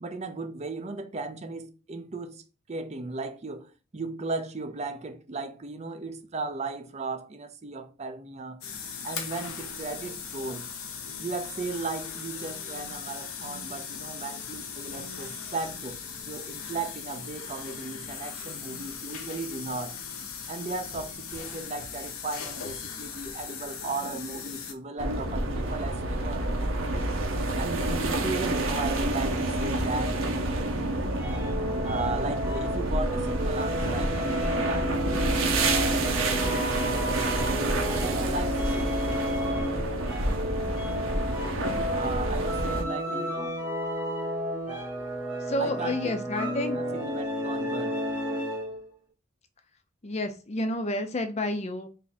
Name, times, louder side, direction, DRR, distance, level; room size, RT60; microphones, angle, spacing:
voice 1, 0.0-2.4 2.7-8.6 9.0-10.7 11.2-16.0 16.3-19.9 20.5-26.5 27.5-30.2 31.8-34.9 37.9-38.7 41.9-43.5 45.6-46.0 47.0-48.0, right 3 dB, 30° right, 0.5 m, -36 dB
sound 1, 8.6-24.7, left 6 dB, 90° left, 0.8 m, -39 dB
sound 2, 25.0-42.8, right 2 dB, 70° right, 0.8 m, -28 dB
sound 3, 31.1-48.8, equal, 5° right, 1.1 m, -32 dB
voice 2, 45.4-46.8 50.0-51.9, left 1 dB, 30° left, 0.4 m, -30 dB
3.4 x 2.7 x 4.0 m
head